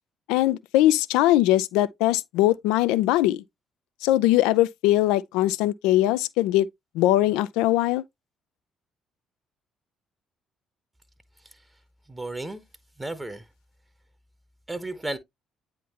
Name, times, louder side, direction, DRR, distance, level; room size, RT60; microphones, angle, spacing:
voice 1, 0.3-3.4 4.0-6.7 7.0-8.0, left 15 dB, 65° left, 0.3 m, -21 dB
voice 2, 12.1-12.6 13.0-13.5 14.7-15.2, right 2 dB, 15° right, 0.9 m, -33 dB
9.1 x 3.6 x 2.9 m
figure-of-eight pair, 45°, 0 cm